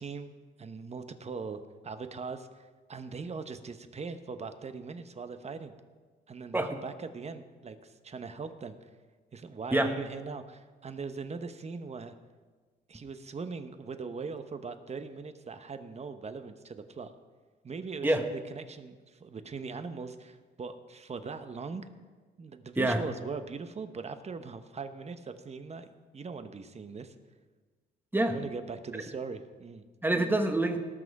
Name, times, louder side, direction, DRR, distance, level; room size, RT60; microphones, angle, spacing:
voice 1, 0.0-5.7 6.3-8.9 9.3-12.1 12.9-17.1 17.6-21.9 22.4-25.9 26.1-27.1 28.3-29.8, right 4 dB, 35° right, 9 dB, 0.9 m, -40 dB
voice 2, 30.0-30.8, right 1 dB, 10° right, 6 dB, 1.2 m, -26 dB
18.5 x 6.3 x 4.8 m, 1.4 s
cardioid pair, 90°, 20 cm